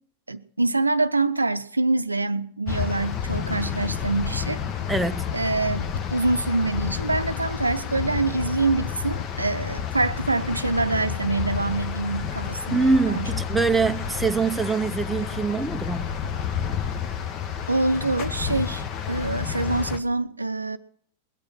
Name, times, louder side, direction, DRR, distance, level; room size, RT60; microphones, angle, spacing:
voice 1, 0.3-4.6 5.3-13.3 17.7-20.8, right 3 dB, 80° right, 0.6 m, -25 dB
sound 1, 2.7-20.0, left 8 dB, 35° left, 1.3 m, -30 dB
voice 2, 4.9-5.3 12.7-16.1, right 4 dB, 5° right, 0.7 m, -24 dB
20.5 x 8.7 x 6.1 m
figure-of-eight pair, 90°, 0 cm